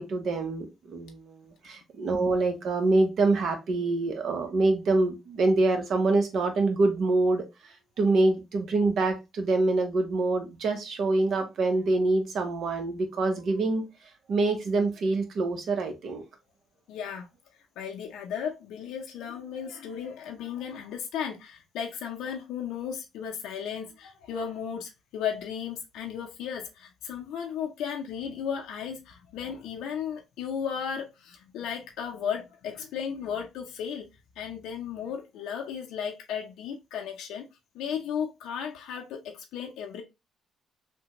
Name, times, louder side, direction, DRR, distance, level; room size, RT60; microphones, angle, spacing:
voice 1, 0.0-7.4 8.0-13.8 14.3-16.2, right 2 dB, 65° right, 0.9 m, -25 dB
voice 2, 16.9-17.3 17.8-34.1 34.4-37.5 37.7-40.0, left 7 dB, 90° left, 0.6 m, -35 dB
3.3 x 2.2 x 2.8 m
cardioid pair, 90°, 0 cm